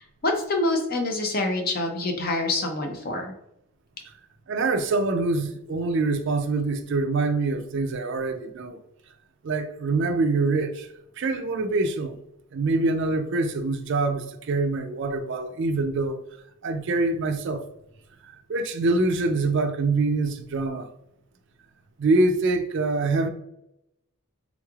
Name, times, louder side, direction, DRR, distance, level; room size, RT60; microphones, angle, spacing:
voice 1, 0.0-3.3, left 2 dB, 45° left, 0.6 m, -26 dB
voice 2, 4.5-8.8 9.4-10.9 11.2-12.2 12.5-16.2 16.6-17.6 18.2-20.9 22.0-23.3, right 3 dB, 55° right, 0.4 m, -25 dB
3.6 x 3.1 x 2.3 m
head